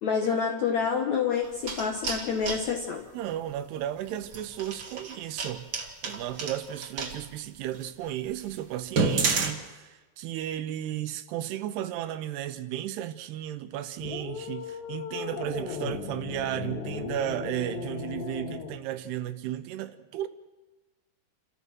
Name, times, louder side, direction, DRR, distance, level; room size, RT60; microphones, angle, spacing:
voice 1, 0.0-3.0, left 6 dB, 70° left, 1.7 m, -28 dB
sound 1, 1.4-2.6 4.2-7.2 7.7-7.8 8.3-8.4 8.8-9.5, right 4 dB, 45° right, 1.6 m, -29 dB
voice 2, 3.1-5.7 6.0-20.3, right 12 dB, 80° right, 2.8 m, -34 dB
sound 2, 14.0-18.8, left 7 dB, 90° left, 4.3 m, -37 dB
30.0 x 13.5 x 6.3 m
omnidirectional pair, 4.8 m